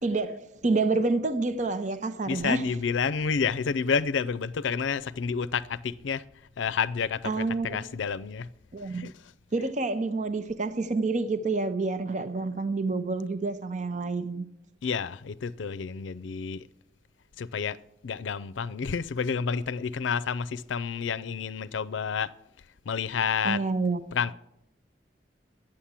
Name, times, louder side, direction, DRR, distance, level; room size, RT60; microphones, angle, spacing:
voice 1, 0.0-2.6 7.2-7.8 8.7-9.0 9.5-14.5 23.4-24.1, right 3 dB, 40° right, 0.6 m, -28 dB
voice 2, 2.3-6.2 6.6-8.5 8.9-9.1 9.6-9.7 14.8-16.7 17.4-17.8 18.0-22.3 22.9-23.6 24.1-24.3, left 6 dB, 90° left, 0.5 m, -29 dB
11.5 x 8.9 x 7.4 m
head